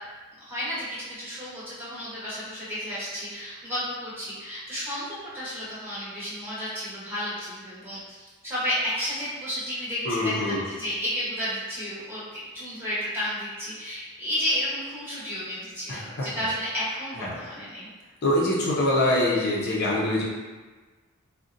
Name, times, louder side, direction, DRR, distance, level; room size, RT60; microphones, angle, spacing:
voice 1, 0.4-17.9, equal, 10° right, -10 dB, 1.0 m, -32 dB
voice 2, 10.0-10.6 15.9-16.3 17.2-17.3 18.2-20.2, left 1 dB, 50° left, -5 dB, 0.5 m, -24 dB
3.8 x 2.1 x 2.5 m, 1.3 s
head